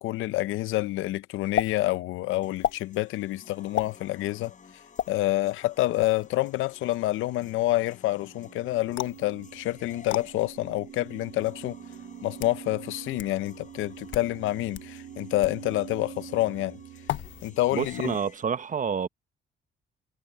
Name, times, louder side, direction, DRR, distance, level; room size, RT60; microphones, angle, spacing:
voice 1, 0.0-4.5 5.1-11.8 12.2-16.8 17.4-18.2, left 17 dB, 90° left, 0.7 m, -28 dB
sound 1, 1.6-1.7 2.6-2.8 3.8-4.0 5.0-5.1 6.0-6.3 9.0-9.2 10.1-10.2 11.2-11.3 12.1-12.6 13.2-13.3 14.0-14.3 14.7-14.9 15.4-15.6 17.1-17.5 17.8-18.2, left 11 dB, 70° left, 1.1 m, -31 dB
sound 2, 2.4-18.4, left 6 dB, 40° left, 4.4 m, -53 dB
sound 3, 8.0-18.1, right 10 dB, 70° right, 1.0 m, -45 dB
voice 2, 17.7-19.1, right 7 dB, 40° right, 1.0 m, -28 dB
cardioid pair, 90°, 20 cm